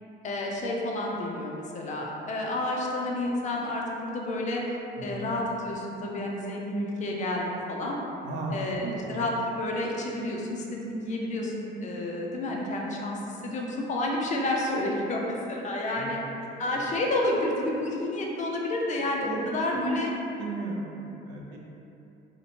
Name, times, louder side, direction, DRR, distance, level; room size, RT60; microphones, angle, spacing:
voice 1, 0.2-4.6 5.0-8.0 8.5-16.2 16.6-20.1, left 1 dB, 40° left, -1 dB, 0.4 m, -30 dB
voice 2, 5.0-5.3 8.2-9.3 16.0-16.3 19.2-21.6, right 2 dB, 80° right, -2 dB, 0.5 m, -35 dB
2.6 x 2.1 x 2.8 m, 2.9 s
cardioid pair, 110°, 18 cm